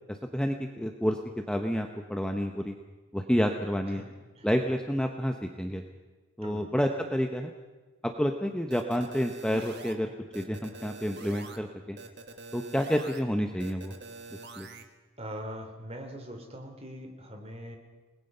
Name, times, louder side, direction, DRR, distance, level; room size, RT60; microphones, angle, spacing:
voice 1, 0.1-1.2 1.5-2.7 3.1-4.0 4.4-5.8 6.4-7.5 8.0-12.0 12.5-13.9 14.6-14.7, equal, 5° left, 4 dB, 0.9 m, -29 dB
voice 2, 4.0-4.5 6.4-6.7 15.2-17.8, equal, 25° right, 4 dB, 2.9 m, -42 dB
sound 1, 8.7-9.9 10.3-11.6 12.0-13.2 13.6-14.8, right 3 dB, 50° right, 1.7 m, -45 dB
29.5 x 20.0 x 5.5 m, 1.3 s
head